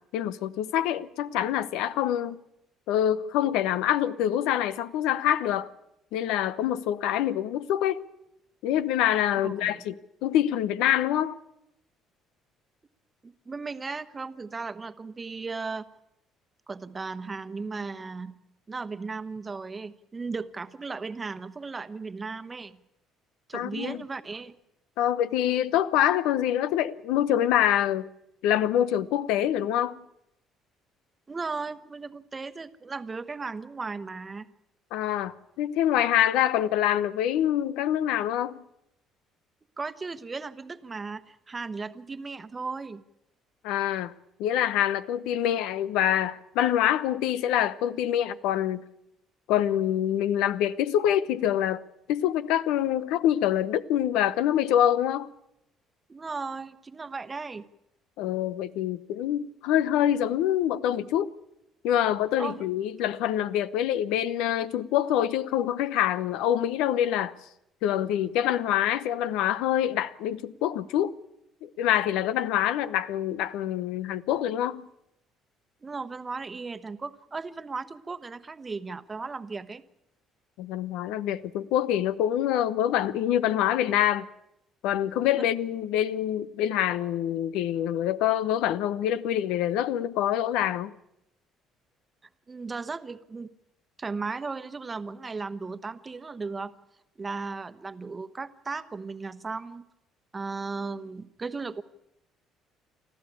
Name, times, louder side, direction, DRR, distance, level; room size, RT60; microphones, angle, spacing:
voice 1, 0.1-2.4 2.9-5.7 6.1-8.0 8.6-9.9 10.2-11.4 23.5-24.0 25.0-28.1 28.4-30.0 34.9-38.6 43.6-44.1 44.4-48.8 49.5-51.8 52.1-55.3 58.2-61.3 61.8-67.3 67.8-71.1 71.6-74.8 80.6-84.3 84.8-90.9, left 11 dB, 85° left, 0.8 m, -25 dB
voice 2, 9.4-9.8 13.2-15.8 16.7-18.4 18.7-22.8 23.5-24.5 31.3-34.5 39.8-43.0 56.1-57.6 62.4-62.6 75.8-79.8 92.5-93.5 94.0-96.7 97.2-99.8 100.3-101.8, right 4 dB, 25° right, 1.1 m, -36 dB
25.0 x 14.0 x 8.5 m
cardioid pair, 110°, 0 cm